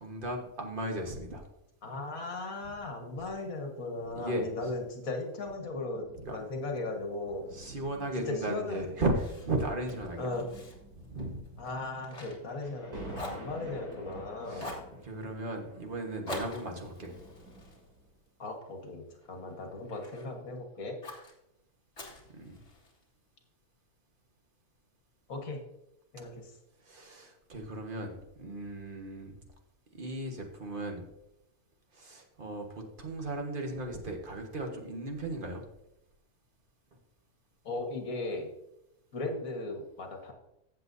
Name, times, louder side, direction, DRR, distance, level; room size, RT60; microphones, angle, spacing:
voice 1, 0.0-1.4 4.1-4.7 6.2-6.4 7.5-10.3 10.9-11.4 14.5-14.7 15.0-17.1 22.3-22.6 26.8-29.3 29.9-31.0 31.9-35.6, right 1 dB, 35° right, 3 dB, 1.5 m, -36 dB
voice 2, 1.8-6.1 6.3-7.4 8.3-8.9 10.2-10.5 11.6-14.7 16.7-16.8 18.4-21.0 25.3-25.6 26.1-26.5 37.7-38.5 39.1-40.3, left 2 dB, 65° left, 3 dB, 1.9 m, -37 dB
sound 1, 5.4-18.2 18.8-19.0, right 1 dB, 70° right, 3.3 m, -50 dB
Fire, 9.1-12.9 13.1-14.2 14.6-14.9 16.3-18.7 19.2-20.3 21.0-21.3 21.9-23.0, left 2 dB, 40° left, 2.1 m, -45 dB
14.5 x 7.5 x 2.7 m, 0.87 s
omnidirectional pair, 1.6 m